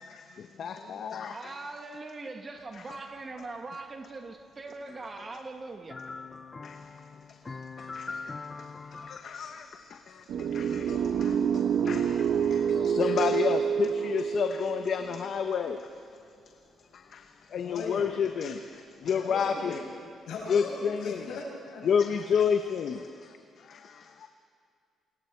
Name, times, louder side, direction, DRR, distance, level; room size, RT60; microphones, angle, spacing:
voice 1, 0.0-1.5 2.7-3.0 6.6-16.2 16.8-19.8 20.5-21.4 21.8-24.3, left 7 dB, 60° left, 6 dB, 1.0 m, -31 dB
voice 2, 1.3-6.0, right 3 dB, 35° right, 4 dB, 2.0 m, -41 dB
sound 1, 5.9-9.2 12.0-12.1, left 4 dB, 30° left, 0.7 m, -41 dB
sound 2, 10.3-15.4, right 7 dB, 80° right, 1.1 m, -27 dB
voice 3, 17.5-18.1 19.0-19.7 20.0-21.9, left 3 dB, 80° left, -2 dB, 6.7 m, -39 dB
28.5 x 22.0 x 4.6 m, 2.3 s
cardioid pair, 90°, 0 cm